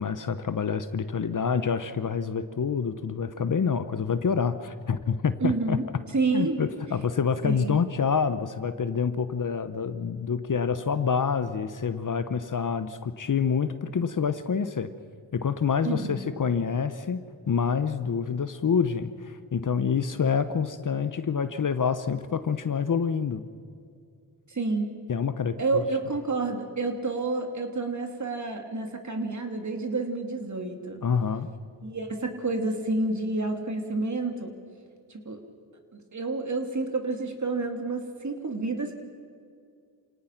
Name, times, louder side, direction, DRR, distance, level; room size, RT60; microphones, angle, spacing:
voice 1, 0.0-5.8 6.3-14.9 15.3-17.2 17.5-23.4 25.1-25.8 31.0-31.5, left 6 dB, 45° left, 12 dB, 0.9 m, -27 dB
voice 2, 5.4-5.8 6.1-6.6 7.4-7.7 15.8-16.2 24.5-24.9 25.6-31.0 31.8-34.5 35.1-35.4 35.9-39.0, right 3 dB, 40° right, 4 dB, 3.0 m, -29 dB
28.0 x 18.0 x 5.9 m, 2.3 s
cardioid pair, 80°, 46 cm